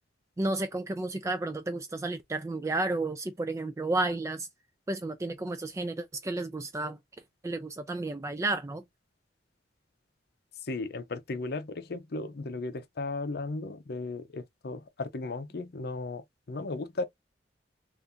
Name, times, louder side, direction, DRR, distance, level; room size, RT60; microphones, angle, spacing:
voice 1, 0.4-4.5 4.9-7.0 7.4-8.8, right 2 dB, 15° right, 0.3 m, -32 dB
voice 2, 10.6-17.0, left 3 dB, 60° left, 0.6 m, -36 dB
2.6 x 2.5 x 3.6 m
head